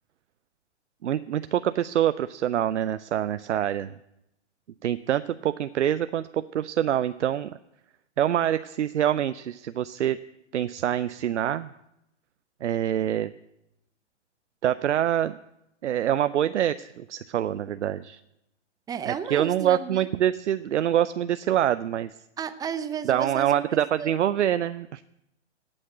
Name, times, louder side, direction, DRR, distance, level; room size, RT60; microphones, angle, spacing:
voice 1, 1.0-3.9 4.8-7.5 8.2-10.2 10.5-11.7 12.6-13.3 14.6-15.4 15.8-18.2 19.0-22.1 23.0-25.0, right 10 dB, 75° right, 13 dB, 0.6 m, -25 dB
voice 2, 18.9-20.1 22.4-24.1, right 7 dB, 10° right, 12 dB, 0.6 m, -33 dB
16.5 x 6.4 x 8.8 m, 0.85 s
hypercardioid pair, 120°, 35 cm